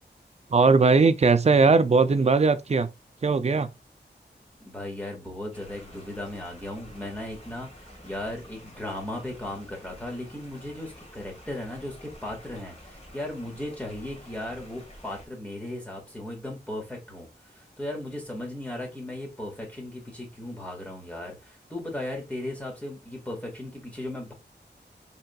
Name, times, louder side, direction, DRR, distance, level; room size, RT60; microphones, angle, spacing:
voice 1, 0.5-2.9 3.2-3.7, right 4 dB, 35° right, 0.4 m, -19 dB
voice 2, 4.6-24.3, left 1 dB, 10° left, 1.7 m, -36 dB
sound 1, 5.5-15.3, equal, 35° left, 1.8 m, -49 dB
4.2 x 3.6 x 2.3 m
wide cardioid pair, 90°, 18 cm